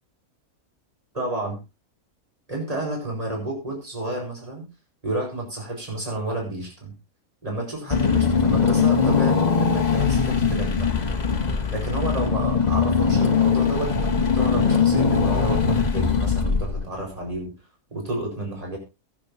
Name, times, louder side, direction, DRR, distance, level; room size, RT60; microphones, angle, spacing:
voice 1, 1.1-1.6 2.5-4.6 5.0-6.9 7.4-10.9 11.7-17.5 17.9-18.8, right 2 dB, 25° right, 0 dB, 5.0 m, -30 dB
Car / Engine, 7.9-17.1, left 6 dB, 30° left, 1.2 m, -21 dB
22.0 x 7.8 x 2.7 m, 0.27 s
omnidirectional pair, 1.6 m